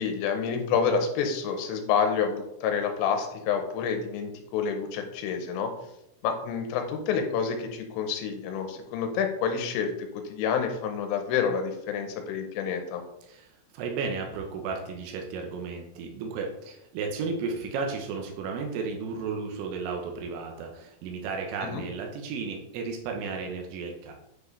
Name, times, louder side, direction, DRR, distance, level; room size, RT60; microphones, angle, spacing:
voice 1, 0.0-5.7 6.2-13.0 21.7-21.8, left 6 dB, 85° left, 5 dB, 3.3 m, -28 dB
voice 2, 13.2-24.1, right 4 dB, 85° right, 2 dB, 3.4 m, -34 dB
9.3 x 4.8 x 3.3 m, 0.84 s
omnidirectional pair, 5.8 m